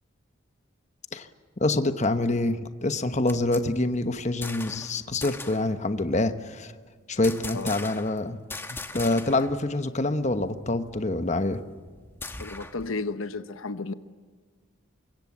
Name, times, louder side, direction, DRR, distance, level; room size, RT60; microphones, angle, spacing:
voice 1, 1.6-6.7 7.1-8.4 8.7-11.6, left 2 dB, 35° left, 9 dB, 1.1 m, -26 dB
sound 1, 3.0-4.9 5.2-5.7 7.2-8.2 8.5-9.6 9.8-9.9 10.3-12.9, left 3 dB, 10° left, 1.3 m, -40 dB
voice 2, 12.4-13.9, left 3 dB, 75° left, 11 dB, 1.0 m, -33 dB
25.5 x 23.0 x 7.3 m, 1.5 s
head